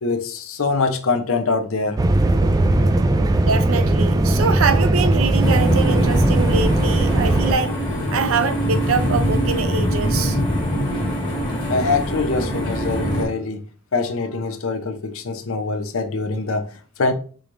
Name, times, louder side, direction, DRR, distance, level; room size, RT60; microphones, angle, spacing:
voice 1, 0.0-2.0 11.7-13.6 13.9-17.1, left 3 dB, 70° left, 0.7 m, -24 dB
sound 1, 2.0-7.5, right 1 dB, 15° right, 0.3 m, -18 dB
voice 2, 3.4-7.7 8.1-10.4, right 5 dB, 70° right, 0.5 m, -24 dB
sound 2, 5.4-13.3, equal, 20° left, 1.3 m, -23 dB
5.0 x 3.1 x 2.5 m
head